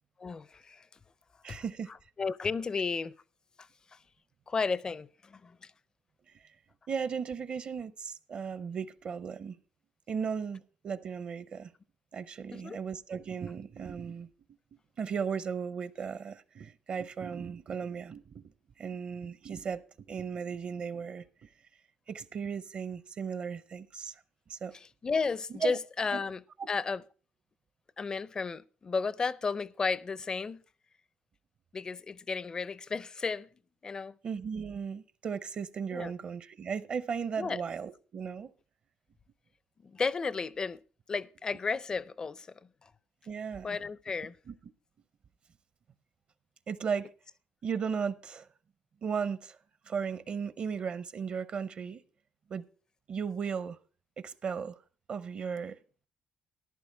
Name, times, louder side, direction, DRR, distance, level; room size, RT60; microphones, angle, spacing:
voice 1, 0.2-0.9 1.5-1.6 2.2-3.1 3.6-4.0 4.5-5.7 12.5-12.8 24.7-27.0 28.0-30.6 31.7-33.5 33.8-34.1 35.9-36.1 37.4-37.6 39.8-40.8 41.1-42.5 42.8-42.9 43.6-44.4, left 4 dB, 25° left, 0.4 m, -33 dB
voice 2, 1.4-1.9 6.9-9.6 10.1-11.7 12.1-14.3 15.0-18.5 18.8-19.8 20.1-21.5 22.1-24.2 24.5-24.7 25.6-25.8 26.6-26.7 34.2-38.5 43.3-43.8 44.5-44.6 46.7-47.1 47.6-48.5 49.0-49.6 49.8-52.0 52.5-52.6 53.1-53.8 54.2-54.8 55.1-55.8, right 6 dB, 45° right, 0.6 m, -36 dB
14.0 x 11.0 x 3.4 m
cardioid pair, 150°, 3 cm